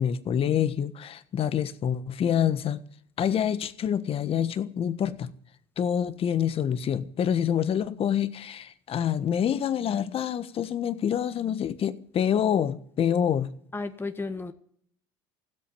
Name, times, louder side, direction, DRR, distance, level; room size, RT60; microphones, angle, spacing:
voice 1, 0.0-2.8 3.2-5.3 5.8-13.5, left 9 dB, 45° left, 1.4 m, -26 dB
voice 2, 13.7-14.5, left 3 dB, 15° left, 1.6 m, -33 dB
16.5 x 8.3 x 9.8 m
hypercardioid pair, 75°, 13 cm